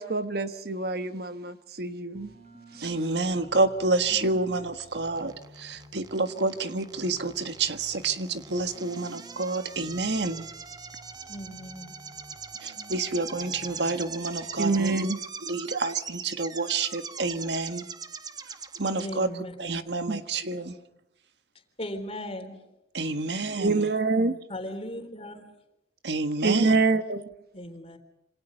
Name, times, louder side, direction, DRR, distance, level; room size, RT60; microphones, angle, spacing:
voice 1, 0.0-2.3 2.7-2.9 14.6-15.2 20.1-20.2 23.6-24.4 26.4-27.3, right 3 dB, 60° right, 10 dB, 1.1 m, -26 dB
sound 1, 2.1-14.9, right 1 dB, 40° right, 4.8 m, -52 dB
voice 2, 2.8-10.4 12.6-15.0 15.4-17.9 18.8-19.3 19.6-20.8 22.9-23.9 26.0-26.8, right 3 dB, 80° right, 8 dB, 1.6 m, -28 dB
sound 2, 4.8-19.1, right 5 dB, 20° right, 0.9 m, -42 dB
voice 3, 11.3-11.9 18.9-19.8 21.8-22.6 24.5-25.4 27.5-28.0, left 1 dB, 35° left, 6 dB, 3.8 m, -37 dB
27.0 x 26.5 x 5.5 m, 0.86 s
head